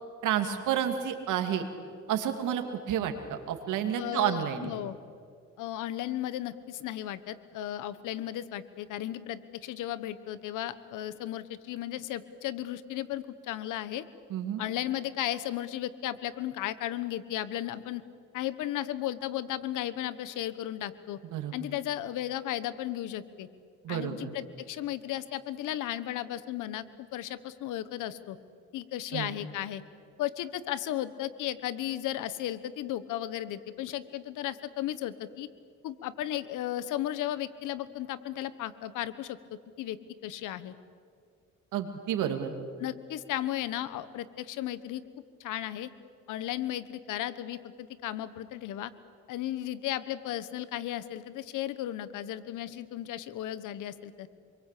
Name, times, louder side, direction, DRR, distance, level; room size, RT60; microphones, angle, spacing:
voice 1, 0.2-1.6 2.1-4.7 14.3-14.6 21.3-21.5 23.8-24.3 29.1-29.3 41.7-42.5, right 9 dB, 85° right, 6 dB, 2.7 m, -30 dB
voice 2, 4.0-5.0 5.6-14.0 14.6-18.0 18.3-21.2 21.5-23.5 23.9-26.8 27.1-28.4 28.7-29.8 30.2-35.5 35.8-40.0 40.2-40.7 42.8-45.0 45.4-45.9 46.3-48.9 49.3-54.3, left 13 dB, 90° left, 15 dB, 1.3 m, -35 dB
26.5 x 23.0 x 8.5 m, 2.2 s
cardioid pair, 90°, 30 cm